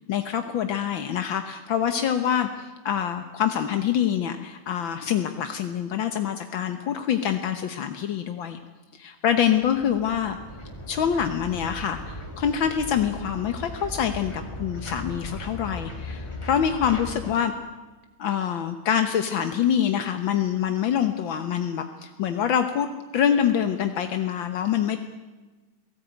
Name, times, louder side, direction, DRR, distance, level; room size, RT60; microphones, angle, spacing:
voice 1, 0.1-8.6 8.9-10.4 10.9-17.5 18.2-25.0, left 9 dB, 60° left, 7 dB, 1.3 m, -25 dB
sound 1, 9.3-17.3, left 1 dB, 10° left, 2.3 m, -38 dB
28.5 x 18.0 x 9.2 m, 1.3 s
omnidirectional pair, 3.5 m